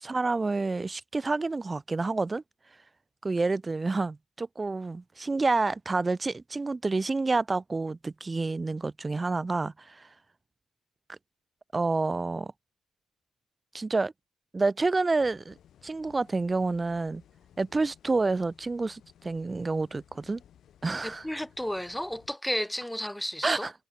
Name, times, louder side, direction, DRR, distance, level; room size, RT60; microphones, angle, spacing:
voice 1, 0.0-2.4 3.2-10.1 11.1-11.2 11.7-12.5 13.7-14.1 14.5-15.6 15.8-17.2 17.6-20.4 20.8-21.3 23.4-23.7, right 3 dB, 25° right, 0.4 m, -28 dB
sound 1, 15.1-22.4, left 10 dB, 65° left, 5.8 m, -58 dB
voice 2, 21.0-23.7, left 1 dB, 5° left, 1.9 m, -33 dB
cardioid pair, 90°, 0 cm